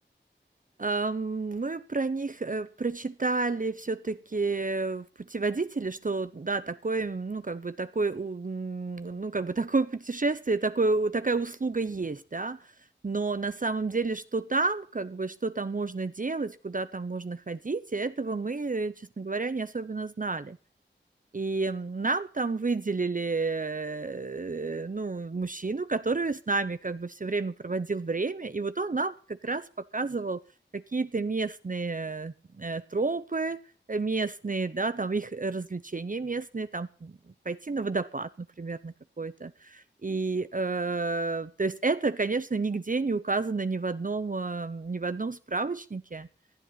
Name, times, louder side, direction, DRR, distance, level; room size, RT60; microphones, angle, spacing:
voice 1, 0.8-12.7 13.0-20.6 21.3-29.7 29.9-30.4 30.7-33.6 33.9-37.2 37.5-46.3, right 3 dB, 45° right, 0.7 m, -30 dB
19.0 x 12.5 x 4.1 m
wide cardioid pair, 65°, 19 cm